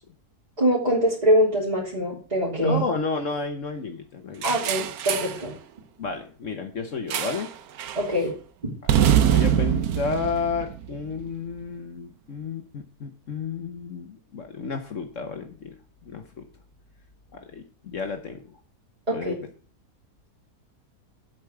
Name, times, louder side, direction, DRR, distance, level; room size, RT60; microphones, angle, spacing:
voice 1, 0.6-2.8 4.4-5.5 7.9-8.3 19.1-19.3, equal, 25° right, -7 dB, 3.1 m, -23 dB
voice 2, 2.6-4.5 6.0-7.5 9.3-15.7 16.1-16.4 17.3-18.4 19.1-19.4, left 5 dB, 55° left, 6 dB, 1.3 m, -31 dB
sound 1, 4.4-5.4 7.1-7.5 7.8-8.1 8.9-11.2, right 10 dB, 70° right, 1.2 m, -23 dB
8.2 x 5.9 x 7.6 m, 0.40 s
omnidirectional pair, 1.7 m